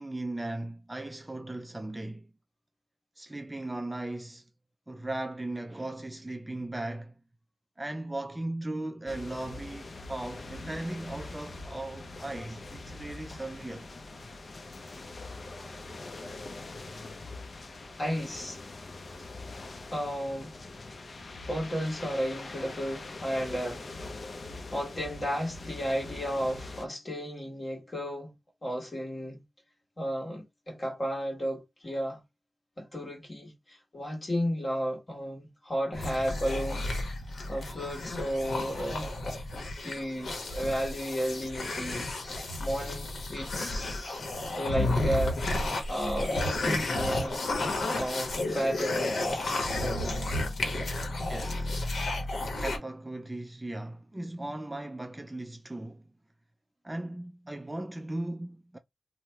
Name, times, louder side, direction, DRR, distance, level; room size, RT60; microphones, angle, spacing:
voice 1, 0.0-2.3 3.2-4.5 4.9-7.2 7.8-13.9 51.2-51.8 52.6-56.0 56.8-58.8, right 2 dB, 15° right, 0.3 m, -37 dB
sound 1, 9.1-26.9, left 3 dB, 55° left, 0.5 m, -43 dB
voice 2, 18.0-18.6 19.9-20.6 21.4-23.9 24.7-28.3 28.6-29.4 30.0-32.2 32.8-36.9 37.5-39.2 39.8-42.1 42.6-44.2 44.6-47.4 47.9-49.2, equal, 35° left, 1.3 m, -33 dB
sound 2, 35.9-52.8, left 2 dB, 75° left, 0.8 m, -32 dB
2.8 x 2.0 x 3.3 m
wide cardioid pair, 90°, 0 cm